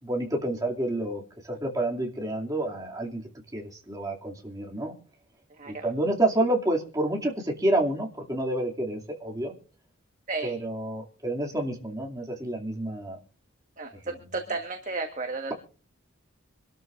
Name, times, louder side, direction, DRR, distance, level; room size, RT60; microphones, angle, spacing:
voice 1, 0.0-3.2 3.5-4.9 5.7-9.5 10.4-13.2 14.0-14.3, right 1 dB, 15° right, -1 dB, 2.5 m, -29 dB
voice 2, 14.3-15.5, right 3 dB, 35° right, 3 dB, 1.4 m, -32 dB
26.0 x 12.5 x 2.5 m, 0.38 s
head